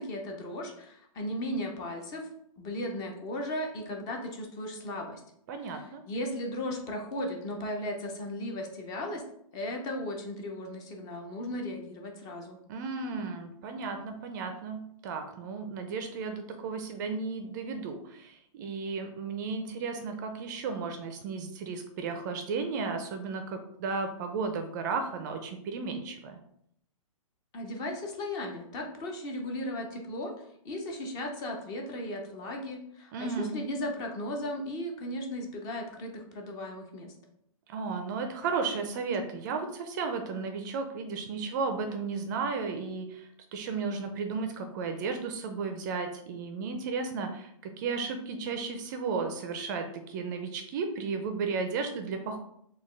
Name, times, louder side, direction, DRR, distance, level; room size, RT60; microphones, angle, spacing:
voice 1, 0.0-2.3 2.6-5.2 5.6-9.2 9.5-12.6 27.5-30.3 30.6-37.1, left 1 dB, 20° left, 2 dB, 0.5 m, -36 dB
voice 2, 5.5-6.0 12.7-26.4 33.1-33.5 37.7-52.4, right 4 dB, 35° right, 6 dB, 0.4 m, -34 dB
4.0 x 2.3 x 3.2 m, 0.72 s
hypercardioid pair, 145°, 18 cm